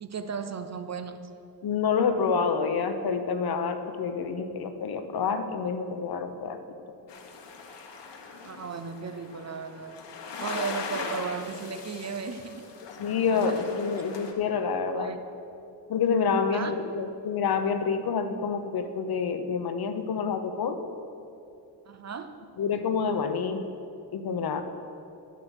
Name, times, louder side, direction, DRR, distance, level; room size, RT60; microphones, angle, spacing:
voice 1, 0.0-1.3 8.4-10.0 10.4-12.7 13.3-13.6 14.9-15.2 16.5-16.7 21.9-22.4, right 5 dB, 40° right, 9 dB, 0.7 m, -35 dB
voice 2, 1.6-6.6 13.0-15.2 15.9-20.8 22.6-23.6 24.1-24.6, left 5 dB, 60° left, 8 dB, 1.0 m, -28 dB
sound 1, 7.1-14.3, left 4 dB, 75° left, 1.5 m, -40 dB
10.5 x 9.2 x 6.4 m, 2.7 s
cardioid pair, 100°, 42 cm